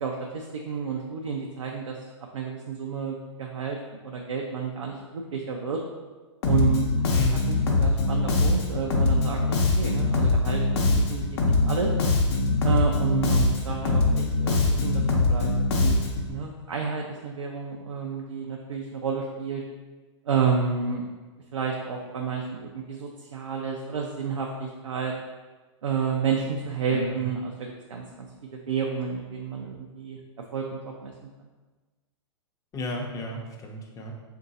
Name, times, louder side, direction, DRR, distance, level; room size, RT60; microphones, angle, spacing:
voice 1, 0.0-2.0 2.3-3.8 4.0-5.8 6.5-6.9 7.5-10.8 11.1-11.9 12.6-16.0 16.3-19.6 20.3-21.1 21.5-25.1 25.8-28.3 28.5-30.2 30.5-31.1 31.4-31.5, right 6 dB, 85° right, 0 dB, 0.5 m, -30 dB
Bass guitar, 6.4-16.3, left 2 dB, 60° left, 0.8 m, -23 dB
voice 2, 7.1-7.4 26.9-27.3 32.7-34.1, left 1 dB, 20° left, 1 dB, 0.7 m, -33 dB
3.7 x 2.6 x 3.9 m, 1.3 s
hypercardioid pair, 110°, 16 cm